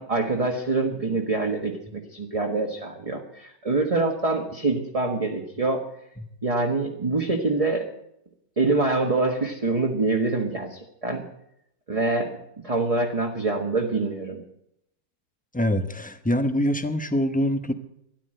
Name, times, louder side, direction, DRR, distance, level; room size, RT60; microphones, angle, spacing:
voice 1, 0.0-5.8 6.4-7.9 8.6-11.2 11.9-12.3 12.6-14.4, right 3 dB, 20° right, 1 dB, 1.4 m, -25 dB
voice 2, 15.5-17.7, equal, 10° left, 9 dB, 0.4 m, -24 dB
13.5 x 11.5 x 7.8 m, 0.77 s
omnidirectional pair, 1.9 m